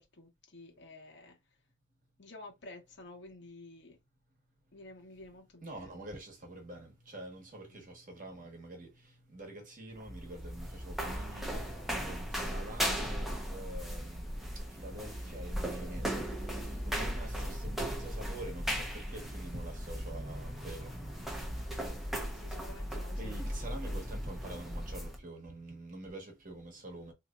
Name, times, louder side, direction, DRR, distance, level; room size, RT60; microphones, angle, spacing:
voice 1, 0.0-1.4 2.2-4.0 4.7-5.9 7.7-7.9 21.5-22.0 22.2-23.8, left 2 dB, 60° left, 1.2 m, -52 dB
voice 2, 5.6-8.9 9.3-11.5 12.0-14.3 14.8-16.3 16.9-20.9 23.2-27.1, right 1 dB, 40° right, 1.2 m, -46 dB
sound 1, 9.9-25.2, equal, ahead, 0.7 m, -37 dB
sound 2, 11.0-22.2, equal, 25° left, 1.1 m, -55 dB
4.1 x 2.9 x 2.4 m
head